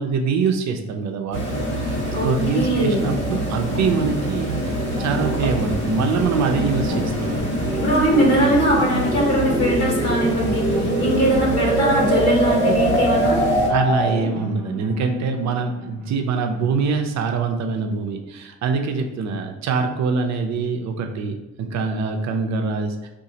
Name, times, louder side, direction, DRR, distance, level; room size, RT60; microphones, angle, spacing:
voice 1, 0.0-7.4 13.7-23.1, right 5 dB, 65° right, 5 dB, 0.5 m, -24 dB
sound 1, 1.3-13.7, equal, 85° left, 1.1 m, -26 dB
voice 2, 2.1-3.0 6.9-7.0 7.3-7.5 7.7-13.4, equal, 55° left, -2 dB, 1.0 m, -21 dB
sound 2, 2.1-17.1, right 2 dB, 15° right, 0.9 m, -33 dB
sound 3, 5.0-14.4, right 1 dB, 5° left, 0.6 m, -26 dB
3.8 x 2.5 x 2.8 m, 0.99 s
cardioid pair, 90°, 30 cm